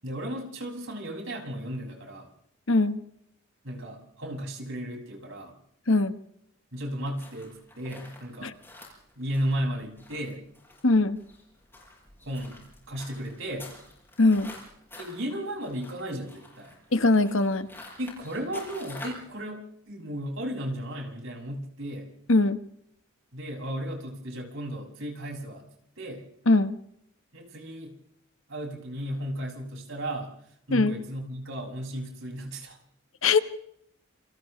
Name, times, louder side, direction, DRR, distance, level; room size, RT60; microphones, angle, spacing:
voice 1, 0.0-2.3 3.6-5.6 6.7-8.5 9.2-10.4 12.2-13.7 15.0-16.7 18.0-22.1 23.3-25.6 26.0-26.3 27.3-27.9 28.5-30.3 30.7-32.8, equal, 70° right, 0 dB, 6.6 m, -35 dB
voice 2, 2.7-3.0 5.9-6.1 8.4-8.5 10.8-11.2 14.2-14.5 16.9-17.7 22.3-22.6 26.5-26.7 30.7-30.9 33.2-33.4, left 2 dB, 75° left, 10 dB, 1.4 m, -21 dB
sound 1, 7.1-19.3, left 2 dB, 10° left, 7.6 m, -48 dB
29.0 x 27.5 x 3.3 m, 0.71 s
head